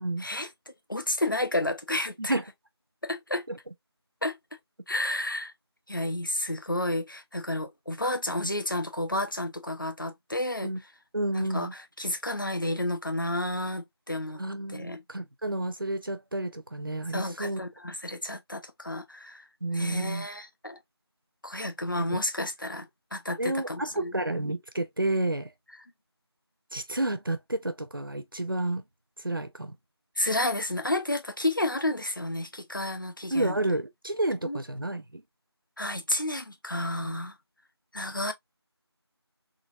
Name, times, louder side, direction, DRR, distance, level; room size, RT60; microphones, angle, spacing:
voice 1, 0.2-0.5 0.9-2.4 3.0-3.5 4.2-4.4 4.9-5.5 5.9-10.7 11.3-14.4 14.7-15.0 17.1-19.5 19.7-20.8 21.4-22.9 23.1-24.1 30.2-33.6 34.4-34.6 35.8-37.4 37.9-38.3, left 1 dB, 50° left, 0.7 m, -31 dB
voice 2, 11.1-11.7 14.4-17.6 19.6-20.3 22.1-22.2 23.4-25.5 26.7-28.8 29.2-29.7 33.3-35.2 37.0-37.2, right 2 dB, 55° right, 0.6 m, -30 dB
3.9 x 3.0 x 2.4 m
figure-of-eight pair, 180°, 14 cm